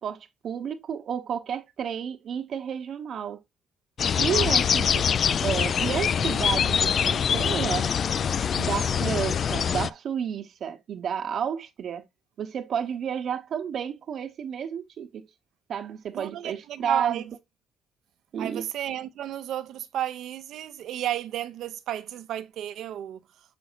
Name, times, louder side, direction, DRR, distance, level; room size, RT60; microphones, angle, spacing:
voice 1, 0.0-3.4 4.2-5.1 5.4-7.9 8.5-12.0 12.4-15.2 15.7-17.2 18.3-18.7, right 8 dB, 65° right, 1.1 m, -31 dB
sound 1, 4.0-9.9, left 7 dB, 55° left, 0.3 m, -24 dB
voice 2, 4.3-4.7 16.1-17.3 18.4-23.2, right 11 dB, 80° right, 0.8 m, -33 dB
7.0 x 6.2 x 2.2 m
cardioid pair, 90°, 0 cm